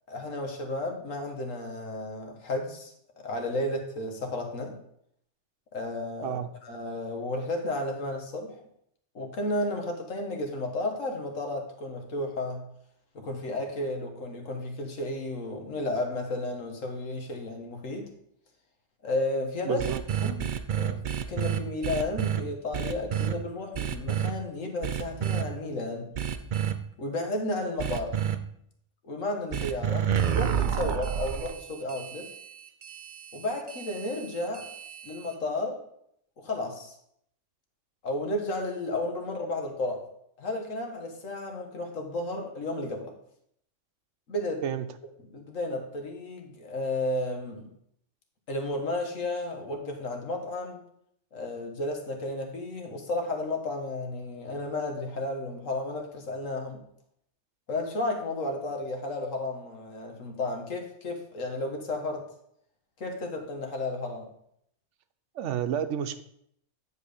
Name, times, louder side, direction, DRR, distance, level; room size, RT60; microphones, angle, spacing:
voice 1, 0.1-2.9 3.2-4.7 5.7-8.6 9.2-12.6 13.1-18.1 19.0-19.9 20.2-26.1 27.0-28.2 29.0-32.3 33.3-34.7 35.0-35.8 36.4-37.0 38.0-40.0 40.4-43.1 44.3-44.6 45.3-47.7 48.5-50.8 51.3-56.8 57.7-62.3 63.0-64.3, left 2 dB, 85° left, 2 dB, 1.8 m, -33 dB
voice 2, 19.7-20.0 44.6-44.8 65.4-66.2, right 9 dB, 70° right, 10 dB, 1.0 m, -30 dB
sound 1, 19.8-22.4 22.7-23.3 23.7-24.3 24.8-25.4 26.1-26.7 27.8-28.3 29.5-35.3, right 9 dB, 55° right, 0.6 m, -30 dB
9.8 x 4.6 x 5.0 m, 0.72 s
omnidirectional pair, 1.3 m